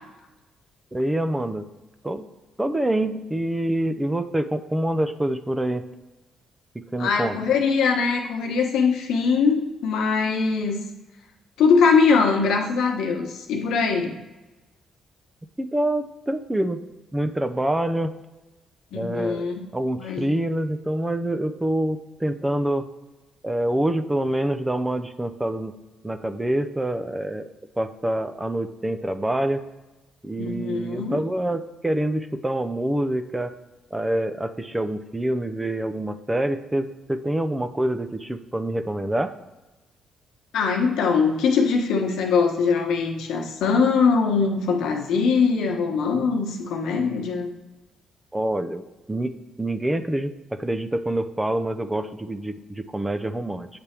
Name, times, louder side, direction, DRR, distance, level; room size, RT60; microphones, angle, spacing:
voice 1, 0.9-1.6 2.0-2.3 2.6-5.8 6.7-7.4 15.6-16.8 17.1-18.1 18.9-19.5 19.7-22.8 23.4-25.8 26.0-27.5 27.8-29.6 30.2-33.5 33.9-39.3 48.3-48.8 49.1-49.3 49.6-53.7, right 1 dB, 10° right, 9 dB, 0.5 m, -26 dB
voice 2, 7.0-10.8 11.6-14.1 18.9-19.6 20.0-20.3 30.4-31.2 40.5-47.5, left 5 dB, 80° left, 2 dB, 1.1 m, -22 dB
8.3 x 3.5 x 4.4 m, 1.1 s
cardioid pair, 90°, 0 cm